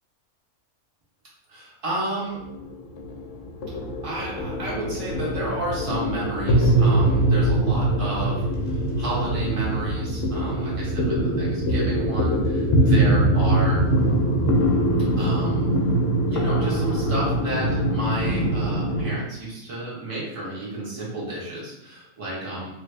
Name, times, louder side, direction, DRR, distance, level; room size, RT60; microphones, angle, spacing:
voice 1, 1.5-2.4 4.0-13.8 15.1-15.9 16.3-22.7, right 1 dB, 25° right, -7 dB, 1.1 m, -31 dB
sound 1, 2.3-19.2, right 1 dB, 65° left, 0.8 m, -22 dB
3.3 x 2.4 x 3.3 m, 0.87 s
omnidirectional pair, 1.5 m